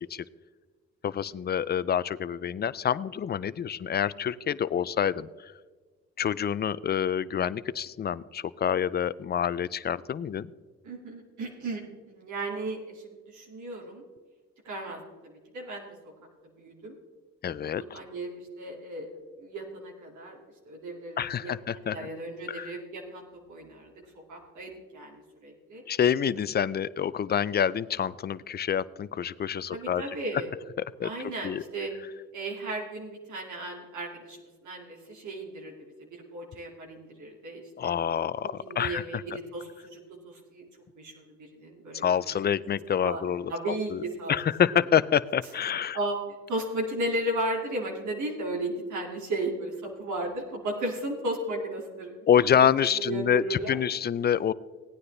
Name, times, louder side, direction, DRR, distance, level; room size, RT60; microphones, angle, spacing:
voice 1, 1.0-5.5 6.2-10.5 17.4-18.0 21.2-22.1 22.5-22.8 25.9-30.0 30.8-31.1 31.4-31.6 37.8-39.2 41.9-44.0 44.3-46.0 52.3-54.5, left 8 dB, 35° left, 17 dB, 0.4 m, -27 dB
voice 2, 10.8-11.8 12.1-14.0 14.6-15.9 16.6-17.0 17.8-19.1 19.4-20.4 20.6-23.9 24.3-25.8 29.7-30.5 31.0-31.9 32.3-35.7 36.1-37.9 38.6-40.7 41.0-42.3 43.0-43.2 43.5-44.3 45.9-46.2 46.5-52.1 53.1-53.8, right 1 dB, 75° right, -1 dB, 2.4 m, -35 dB
17.0 x 9.6 x 3.3 m, 1.4 s
cardioid pair, 90°, 30 cm